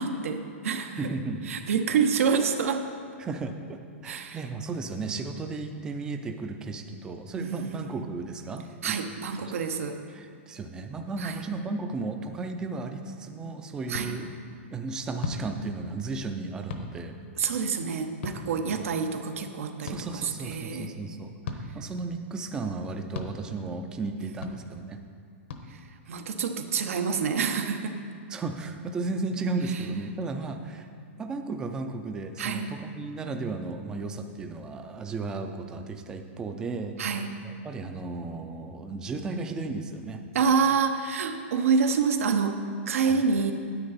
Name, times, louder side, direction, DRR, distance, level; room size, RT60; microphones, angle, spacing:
voice 1, 0.0-1.1 1.5-2.9 4.0-4.4 7.4-8.0 8.8-10.0 11.2-11.4 13.9-14.2 17.4-20.9 24.2-24.3 25.7-25.8 26.1-28.0 32.4-32.7 37.0-37.4 40.3-42.6 42.9-43.5, right 5 dB, 85° right, 6 dB, 0.9 m, -27 dB
voice 2, 1.0-1.4 3.2-8.9 9.4-9.5 10.1-14.3 14.7-17.2 18.7-18.8 19.8-25.0 28.3-30.9 31.2-36.9 37.4-40.2 43.0-43.2, right 3 dB, 10° right, 6 dB, 0.4 m, -34 dB
sound 1, 13.9-14.1 15.2-15.4 16.7-16.9 18.2-18.4 19.9-20.0 21.4-21.6 23.1-23.3 24.4-24.6 25.5-25.6, left 6 dB, 60° left, 0.9 m, -35 dB
9.7 x 8.8 x 4.1 m, 2.2 s
supercardioid pair, 170°, 7 cm